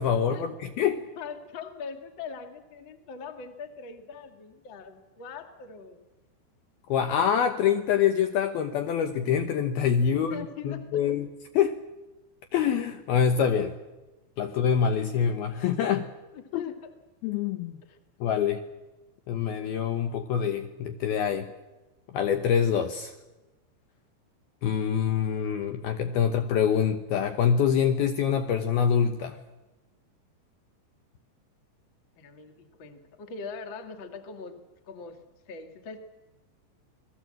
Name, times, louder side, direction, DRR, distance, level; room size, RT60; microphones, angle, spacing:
voice 1, 0.0-1.0 6.9-11.3 11.5-11.8 12.5-13.8 14.4-16.1 16.5-16.6 17.2-17.7 18.2-18.6 19.3-21.5 22.1-23.1 24.6-29.4, left 8 dB, 70° left, 7 dB, 2.5 m, -25 dB
voice 2, 1.2-6.0 10.1-11.1 16.3-16.9 17.9-18.0 32.2-34.6 34.9-35.2 35.5-36.0, left 5 dB, 45° left, 6 dB, 1.7 m, -41 dB
27.5 x 20.5 x 7.7 m, 1.1 s
omnidirectional pair, 5.3 m